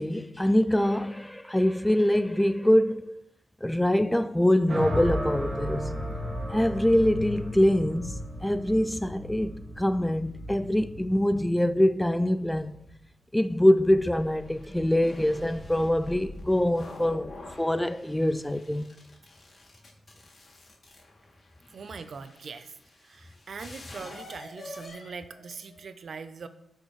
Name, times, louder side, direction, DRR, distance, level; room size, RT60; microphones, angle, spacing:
voice 1, 0.0-3.2 3.6-6.0 6.5-12.8 13.3-17.3 17.6-18.9, left 1 dB, 5° left, 0.3 m, -24 dB
sound 1, 4.7-12.9, equal, 35° right, 2.0 m, -35 dB
sound 2, 13.9-25.9, left 1 dB, 40° left, 2.2 m, -46 dB
voice 2, 21.7-26.5, right 5 dB, 50° right, 0.6 m, -42 dB
12.5 x 6.6 x 3.2 m
wide cardioid pair, 140°, 0 cm